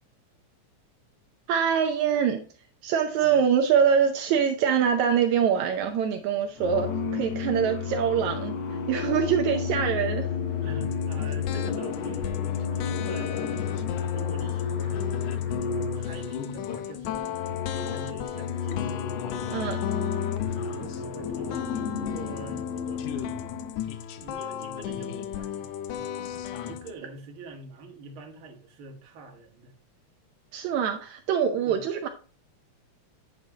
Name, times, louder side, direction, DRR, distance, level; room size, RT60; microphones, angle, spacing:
voice 1, 1.5-2.4 2.8-8.6 8.9-10.3 19.5-19.8 30.5-32.1, right 7 dB, 80° right, 2.1 m, -24 dB
sound 1, 5.8-6.2 6.6-16.6 17.1-23.7, left 6 dB, 70° left, 1.8 m, -31 dB
voice 2, 10.6-12.2 12.7-19.2 19.7-20.1 20.7-21.7 22.0-23.4 24.2-26.1 26.6-29.7 31.7-31.8, right 3 dB, 50° right, 2.1 m, -45 dB
sound 2, 10.8-26.9, left 9 dB, 85° left, 2.1 m, -36 dB
9.2 x 6.6 x 2.9 m
omnidirectional pair, 3.4 m